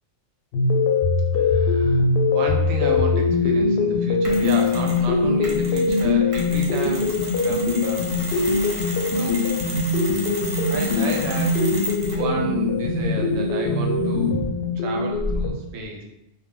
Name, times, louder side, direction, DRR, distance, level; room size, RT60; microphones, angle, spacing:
sound 1, 0.5-15.5, left 3 dB, 65° left, 0.7 m, -22 dB
voice 1, 1.3-7.1 7.4-8.3 9.1-9.4 9.9-14.4 14.8-16.0, right 3 dB, 80° right, 2 dB, 0.9 m, -32 dB
Mechanisms, 4.2-5.1 5.4-12.3, equal, 45° right, 0.4 m, -34 dB
2.2 x 2.1 x 3.6 m, 0.83 s
omnidirectional pair, 1.3 m